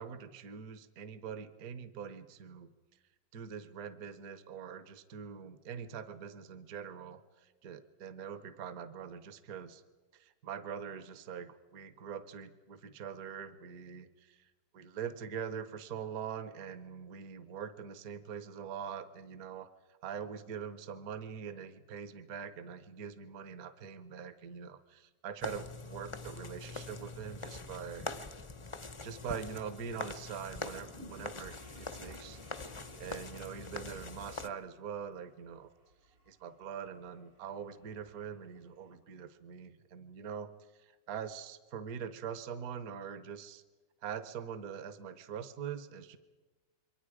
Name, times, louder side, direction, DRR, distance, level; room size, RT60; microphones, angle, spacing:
voice 1, 0.0-2.7 3.3-9.8 10.1-14.5 14.7-28.1 29.0-32.4 33.0-35.7 36.3-40.5 40.8-43.6 44.0-46.2, right 7 dB, 55° right, 12 dB, 1.4 m, -43 dB
sound 1, 25.4-34.5, left 3 dB, 45° left, 0.4 m, -44 dB
sound 2, 30.9-39.0, right 1 dB, 90° right, 3.9 m, -60 dB
27.5 x 23.5 x 5.0 m, 1.2 s
omnidirectional pair, 2.0 m